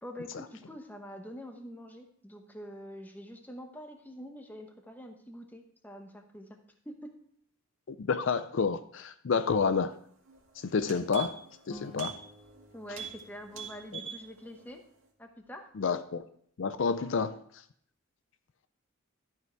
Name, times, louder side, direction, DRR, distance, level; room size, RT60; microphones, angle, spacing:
voice 1, 0.0-6.6 6.8-7.1 12.7-14.8 15.2-15.7, equal, 10° left, 4 dB, 0.9 m, -45 dB
voice 2, 7.9-10.0 10.6-11.4 11.7-12.1 15.8-16.2 16.6-17.6, left 5 dB, 60° left, 11 dB, 0.4 m, -29 dB
sound 1, 10.3-10.4 10.7-11.6 11.9-12.2 12.5-12.6 12.9-13.2 13.5-14.2 14.6-14.7, right 7 dB, 70° right, 2.1 m, -41 dB
sound 2, 11.7-14.9, left 1 dB, 25° left, 2.2 m, -53 dB
12.5 x 5.8 x 4.5 m, 0.64 s
head